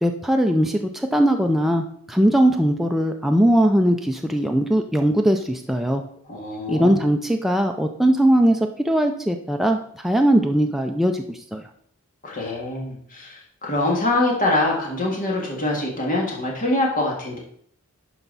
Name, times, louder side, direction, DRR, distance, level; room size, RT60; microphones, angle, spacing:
voice 1, 0.0-6.0 6.7-8.6 8.8-11.6, right 1 dB, ahead, 3 dB, 0.5 m, -20 dB
voice 2, 6.3-7.0 12.2-17.4, left 2 dB, 40° left, -2 dB, 2.0 m, -24 dB
11.5 x 4.6 x 4.0 m, 0.62 s
head